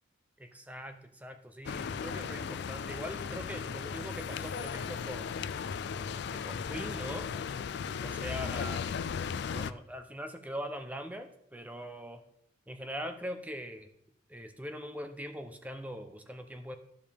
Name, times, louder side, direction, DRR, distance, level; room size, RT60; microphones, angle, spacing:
voice 1, 0.4-5.5 6.3-7.3 8.0-9.1 9.5-12.2 12.7-13.9 14.3-16.8, equal, 10° right, 7 dB, 0.6 m, -42 dB
sound 1, 1.7-9.7, left 6 dB, 55° left, 0.3 m, -36 dB
sound 2, 2.8-5.4 6.7-8.9, right 1 dB, 35° right, 1.7 m, -64 dB
13.5 x 5.1 x 3.5 m, 0.72 s
head